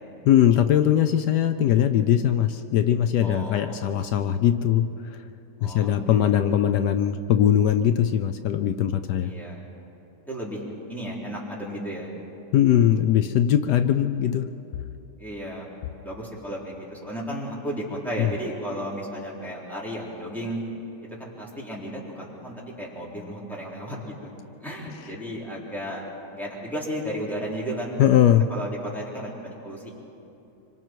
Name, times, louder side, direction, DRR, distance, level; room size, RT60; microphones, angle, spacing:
voice 1, 0.3-4.9 5.6-9.3 12.5-14.5 18.2-18.3 28.0-28.5, left 10 dB, 75° left, 9 dB, 1.2 m, -20 dB
voice 2, 3.2-3.8 5.6-6.3 9.2-9.6 10.3-12.2 15.2-15.7 16.0-20.6 21.0-24.3 24.6-26.0 26.3-28.0 28.3-29.9, equal, ahead, -5 dB, 3.7 m, -34 dB
25.5 x 25.0 x 4.6 m, 2.8 s
omnidirectional pair, 1.9 m